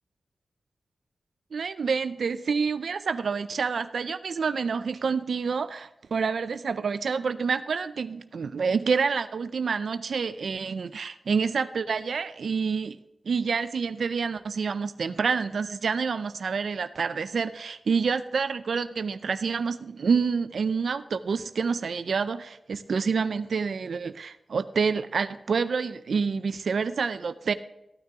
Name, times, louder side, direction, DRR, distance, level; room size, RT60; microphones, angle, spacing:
voice 1, 1.5-13.0 13.3-27.5, right 5 dB, 85° right, 11 dB, 0.4 m, -28 dB
14.0 x 9.4 x 3.6 m, 0.92 s
wide cardioid pair, 125°, 0 cm